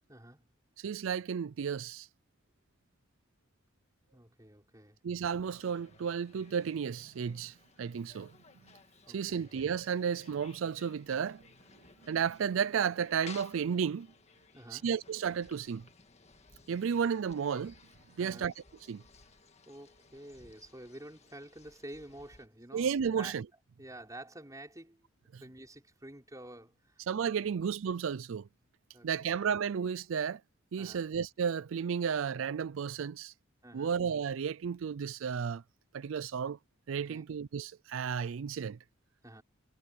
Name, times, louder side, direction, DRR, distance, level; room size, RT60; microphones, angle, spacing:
voice 1, 0.1-0.4 4.1-5.1 9.1-9.5 14.5-14.9 18.2-18.5 19.7-23.4 23.8-25.1 25.3-27.0 27.4-27.7 28.9-29.3 30.8-31.0 33.6-33.9 37.0-37.3 39.2-39.4, right 1 dB, 15° right, 5.9 m, -50 dB
voice 2, 0.8-2.1 5.0-8.3 9.1-11.4 12.1-14.1 14.7-15.8 16.7-17.7 18.2-18.5 18.9-19.0 22.7-23.4 27.1-28.5 29.0-30.4 30.7-33.3 33.7-35.6 35.9-36.6 36.9-38.8, right 7 dB, 75° right, 0.4 m, -33 dB
sound 1, 5.4-22.5, left 5 dB, 35° left, 1.7 m, -58 dB
head